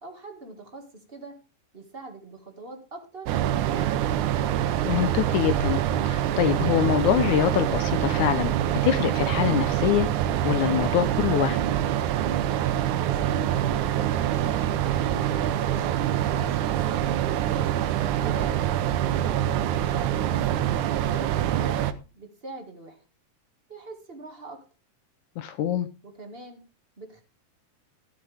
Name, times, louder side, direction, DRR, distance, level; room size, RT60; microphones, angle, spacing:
voice 1, 0.0-1.3 1.7-3.3 3.6-3.9 13.0-14.7 15.3-16.0 16.3-17.7 18.1-19.0 19.6-20.4 21.0-21.8 22.1-23.0 23.7-24.6 26.0-26.6 27.0-27.2, right 3 dB, 25° right, 1.3 m, -42 dB
sound 1, 3.3-21.9, right 11 dB, 75° right, 2.1 m, -25 dB
voice 2, 4.9-5.8 6.1-8.5 8.8-10.1 10.4-11.6 25.4-25.9, left 10 dB, 75° left, 2.0 m, -24 dB
12.5 x 11.5 x 3.5 m
omnidirectional pair, 3.9 m